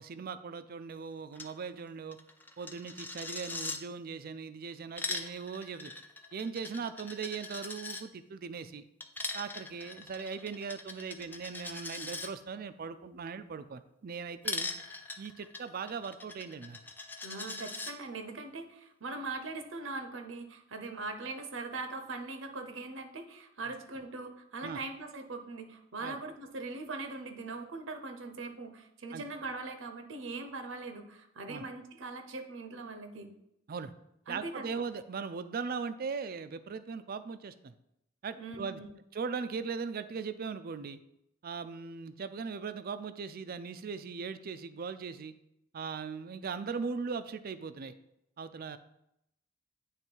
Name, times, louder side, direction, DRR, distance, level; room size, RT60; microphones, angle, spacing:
voice 1, 0.0-2.2 2.6-5.9 6.3-8.8 9.3-14.7 15.2-16.8 24.6-24.8 26.0-26.2 29.1-29.2 31.5-31.6 33.7-33.9 34.3-37.7 38.2-38.8 39.1-41.0 41.4-45.3 45.7-47.9 48.4-48.8, right 5 dB, 50° right, 12 dB, 0.4 m, -39 dB
Coin (dropping), 1.3-1.5 1.8-1.9 2.1-3.8 4.7-8.0 9.0-12.3 14.4-17.9, left 3 dB, 10° left, 0.4 m, -41 dB
voice 2, 17.2-33.3 34.3-34.8 38.4-38.9, right 3 dB, 80° right, 6 dB, 0.8 m, -41 dB
9.3 x 3.2 x 4.5 m, 0.81 s
head